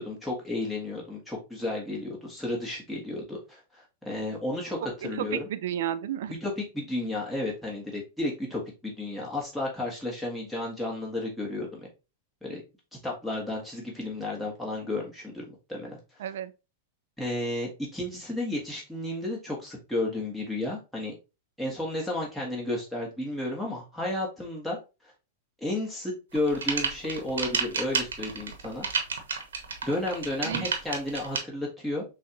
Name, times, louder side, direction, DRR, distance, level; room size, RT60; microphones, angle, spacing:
voice 1, 0.0-5.5 6.4-11.9 12.4-12.6 13.0-15.4 15.7-16.0 17.2-21.1 21.6-24.8 25.6-28.8 29.8-32.0, left 1 dB, ahead, 1.4 m, -32 dB
voice 2, 4.8-6.3 16.2-16.5 30.4-30.7, right 11 dB, 70° right, 0.4 m, -32 dB
sound 1, 26.3-31.4, right 5 dB, 85° right, 1.1 m, -30 dB
6.2 x 2.4 x 2.8 m
hypercardioid pair, 110°, 0 cm